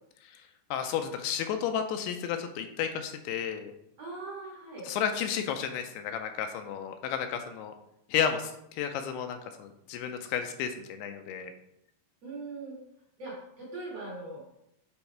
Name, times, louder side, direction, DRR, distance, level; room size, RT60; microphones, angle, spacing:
voice 1, 0.7-3.7 4.9-7.7 8.1-11.5, left 8 dB, 85° left, 6 dB, 2.5 m, -32 dB
voice 2, 4.0-4.9 12.2-12.8 13.2-14.4, right 3 dB, 55° right, -6 dB, 1.9 m, -40 dB
7.1 x 3.9 x 4.5 m, 0.78 s
omnidirectional pair, 4.8 m